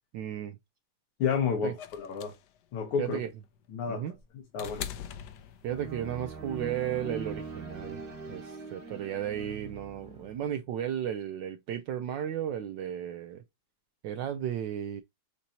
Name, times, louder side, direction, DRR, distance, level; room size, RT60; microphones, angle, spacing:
voice 1, 0.1-0.6 1.6-1.7 3.0-3.3 3.9-4.2 5.6-8.0 8.3-13.4 14.0-15.0, right 10 dB, 75° right, 1.1 m, -34 dB
voice 2, 1.2-2.3 2.7-3.2 3.7-4.0 4.5-4.9, left 6 dB, 90° left, 2.0 m, -30 dB
sound 1, 1.8-6.1 7.3-7.4, left 9 dB, 70° left, 1.0 m, -42 dB
sound 2, 5.0-5.2 5.6-10.5, right 4 dB, 50° right, 1.9 m, -42 dB
6.7 x 2.7 x 2.8 m
omnidirectional pair, 2.3 m